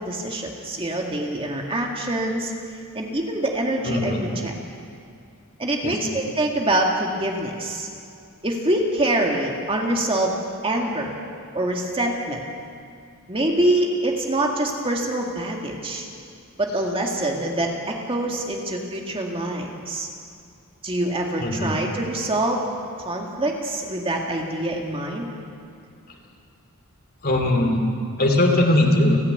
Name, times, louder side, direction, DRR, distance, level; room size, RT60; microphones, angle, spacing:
voice 1, 0.0-2.5 2.9-4.5 5.6-7.9 8.4-10.4 10.6-11.1 11.5-12.4 13.3-16.1 16.6-20.1 20.8-22.7 23.1-25.3, right 1 dB, 25° right, 0 dB, 2.0 m, -25 dB
voice 2, 3.9-4.2 5.8-6.2 21.4-21.8 27.2-27.8 28.2-29.2, left 1 dB, 45° left, 2 dB, 2.9 m, -20 dB
30.0 x 10.5 x 8.4 m, 2.4 s
head